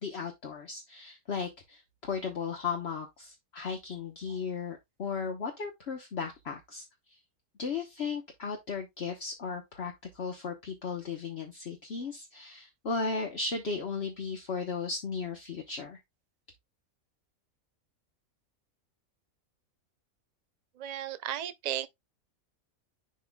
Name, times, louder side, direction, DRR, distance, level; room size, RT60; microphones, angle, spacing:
voice 1, 0.0-6.8 7.1-7.2 7.6-16.0, left 5 dB, 50° left, 1.3 m, -36 dB
voice 2, 20.8-21.9, right 11 dB, 65° right, 0.4 m, -34 dB
11.0 x 3.8 x 2.3 m
omnidirectional pair, 1.5 m